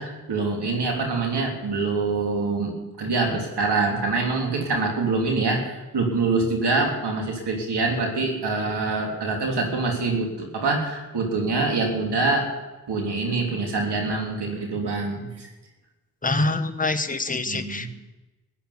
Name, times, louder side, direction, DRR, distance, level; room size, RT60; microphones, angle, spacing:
voice 1, 0.0-2.7 3.0-12.5 12.9-15.5 17.5-17.9, right 3 dB, 85° right, 1 dB, 3.2 m, -25 dB
voice 2, 16.2-17.9, left 2 dB, 20° left, 7 dB, 1.3 m, -25 dB
15.0 x 8.5 x 9.8 m, 1.1 s
cardioid pair, 50°, 39 cm